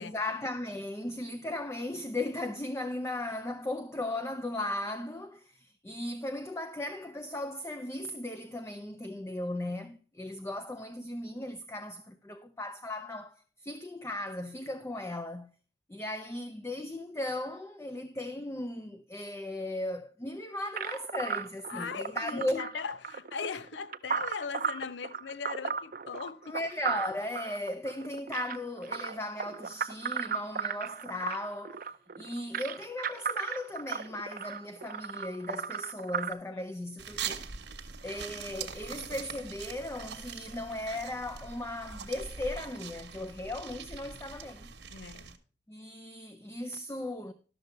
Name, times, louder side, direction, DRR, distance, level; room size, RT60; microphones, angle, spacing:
voice 1, 0.0-15.5 15.9-22.7 26.4-31.9 32.2-37.4 38.0-44.7 45.7-47.3, left 1 dB, 15° left, 0.4 m, -37 dB
sound 1, 20.8-36.3, right 6 dB, 50° right, 0.5 m, -35 dB
voice 2, 21.7-26.6 36.5-36.6 37.2-37.4 44.9-45.4, left 5 dB, 85° left, 0.5 m, -39 dB
sound 2, 37.0-45.4, right 6 dB, 85° right, 1.2 m, -42 dB
12.0 x 6.6 x 4.3 m
head